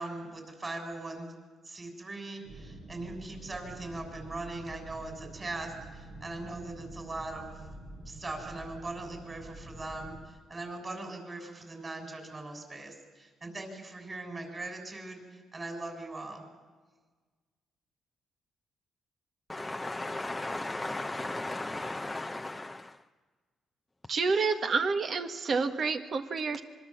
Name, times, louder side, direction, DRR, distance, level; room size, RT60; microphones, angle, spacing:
voice 1, 0.0-1.3 1.6-7.7 8.1-16.4, right 2 dB, 30° right, 3 dB, 7.0 m, -40 dB
sound 1, 2.4-10.2, right 2 dB, 65° right, 7.7 m, -47 dB
voice 2, 19.5-23.0, left 2 dB, 10° left, 6 dB, 0.7 m, -36 dB
voice 3, 24.1-26.6, right 4 dB, 50° right, 7 dB, 1.7 m, -29 dB
25.5 x 23.5 x 7.4 m, 1.4 s
cardioid pair, 90°, 0 cm